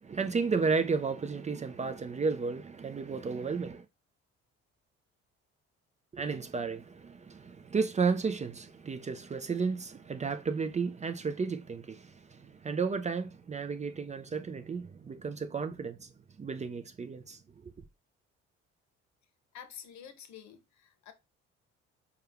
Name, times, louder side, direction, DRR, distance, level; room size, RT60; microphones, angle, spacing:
voice 1, 0.0-3.9 6.1-16.1 16.4-17.7, right 5 dB, 25° right, 0.4 m, -33 dB
voice 2, 19.5-21.1, left 8 dB, 65° left, 0.8 m, -49 dB
4.4 x 2.3 x 3.3 m
hypercardioid pair, 60°, 31 cm